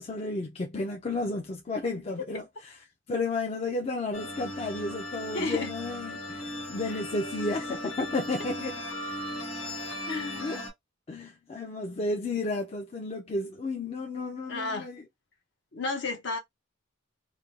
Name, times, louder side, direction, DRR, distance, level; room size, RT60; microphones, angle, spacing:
voice 1, 0.0-2.4 3.1-8.8 10.4-10.6 11.1-15.1, left 2 dB, 30° left, 0.4 m, -32 dB
sound 1, 4.1-10.7, left 1 dB, 75° left, 1.3 m, -37 dB
voice 2, 5.3-5.7 10.1-10.6 14.5-14.9 15.7-16.4, left 3 dB, 55° left, 0.8 m, -32 dB
2.5 x 2.1 x 2.9 m
head